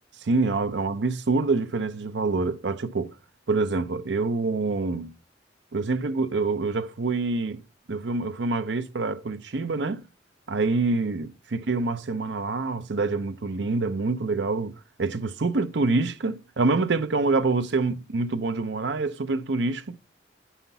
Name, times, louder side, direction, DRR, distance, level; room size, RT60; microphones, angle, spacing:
voice 1, 0.2-3.1 3.5-5.1 5.7-7.6 7.9-10.0 10.5-19.9, right 3 dB, 70° right, 0.6 m, -26 dB
8.0 x 5.7 x 5.6 m
head